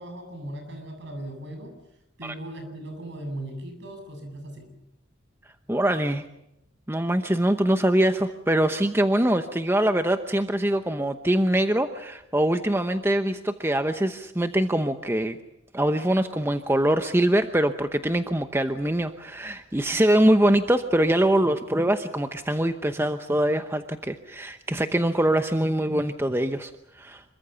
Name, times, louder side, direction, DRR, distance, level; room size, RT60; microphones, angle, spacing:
voice 1, 0.0-1.7 2.2-4.7, right 1 dB, 60° right, 6 dB, 7.8 m, -38 dB
voice 2, 5.7-6.2 6.9-15.4 15.7-26.7 27.0-27.2, right 1 dB, 10° right, 8 dB, 0.9 m, -23 dB
26.5 x 23.5 x 7.0 m, 0.85 s
head